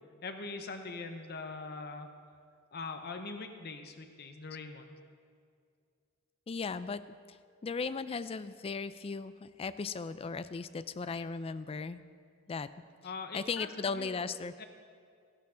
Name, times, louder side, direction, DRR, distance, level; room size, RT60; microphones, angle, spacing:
voice 1, 0.2-2.1 2.7-5.0 13.0-14.2 14.6-14.7, left 3 dB, 50° left, 6 dB, 0.8 m, -42 dB
voice 2, 6.5-7.0 7.3-7.4 7.6-12.0 12.5-12.7 13.3-14.5, left 4 dB, 25° left, 13 dB, 0.3 m, -37 dB
15.5 x 11.5 x 3.8 m, 2.2 s
head